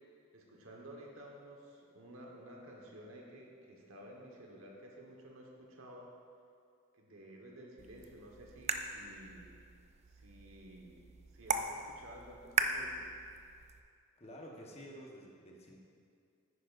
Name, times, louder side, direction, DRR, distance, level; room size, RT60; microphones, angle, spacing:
voice 1, 0.3-6.1 6.9-9.5 10.1-13.1, right 1 dB, 75° right, -1 dB, 1.2 m, -53 dB
sound 1, 7.8-13.8, right 5 dB, 30° right, 0.4 m, -39 dB
voice 2, 14.2-15.8, equal, 30° left, -1 dB, 1.1 m, -50 dB
10.0 x 9.5 x 2.5 m, 2.3 s
head